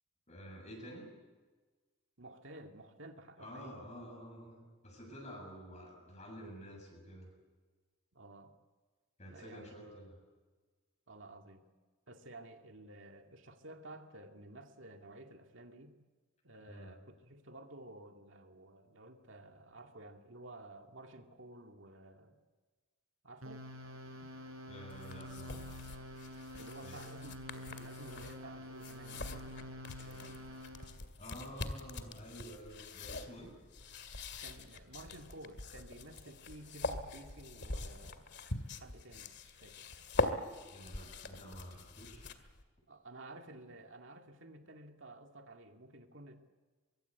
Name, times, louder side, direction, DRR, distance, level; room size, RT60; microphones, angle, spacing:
voice 1, 0.3-1.0 3.4-7.3 9.2-10.2 16.7-16.9 24.7-25.9 26.8-27.0 31.2-33.5 40.7-42.3, equal, 35° left, 1 dB, 7.4 m, -50 dB
voice 2, 2.2-3.9 8.1-8.6 9.3-9.7 11.1-11.6 12.1-16.0 16.4-22.4 23.2-23.7 26.6-30.4 34.4-38.3 38.7-39.9 42.9-46.4, right 2 dB, 65° right, 4 dB, 2.3 m, -53 dB
sound 1, 23.4-31.0, left 1 dB, 80° right, 6.5 m, -48 dB
sound 2, 24.9-42.6, left 2 dB, 55° left, 2.1 m, -43 dB
24.0 x 24.0 x 8.2 m, 1.3 s
head